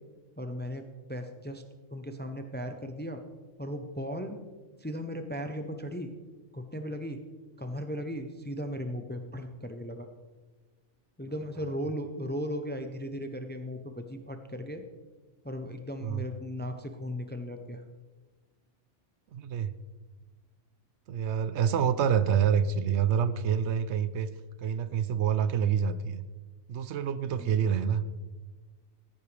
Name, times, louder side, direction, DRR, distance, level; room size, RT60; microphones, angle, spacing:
voice 1, 0.4-1.6 1.9-3.2 3.6-4.4 4.8-6.1 6.5-7.2 7.6-10.1 11.2-14.8 15.4-17.8 27.4-27.7, equal, 10° left, 7 dB, 0.5 m, -37 dB
voice 2, 19.3-19.7 21.1-24.3 24.6-26.2 26.7-28.0, right 8 dB, 70° right, 14 dB, 0.9 m, -27 dB
14.0 x 10.5 x 3.4 m, 1.3 s
omnidirectional pair, 1.2 m